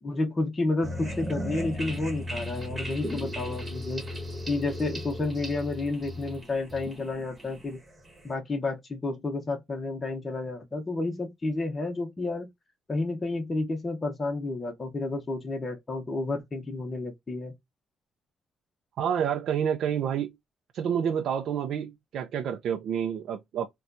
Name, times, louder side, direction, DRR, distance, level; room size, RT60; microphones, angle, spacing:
voice 1, 0.0-4.0 4.5-7.8 8.2-12.5 12.9-17.5, left 2 dB, 30° left, 0.8 m, -31 dB
sound 1, 0.8-8.3, left 1 dB, 20° right, 1.4 m, -36 dB
voice 2, 19.0-20.3 20.7-23.7, right 8 dB, 70° right, 0.4 m, -28 dB
4.1 x 2.2 x 2.5 m
cardioid pair, 90°, 0 cm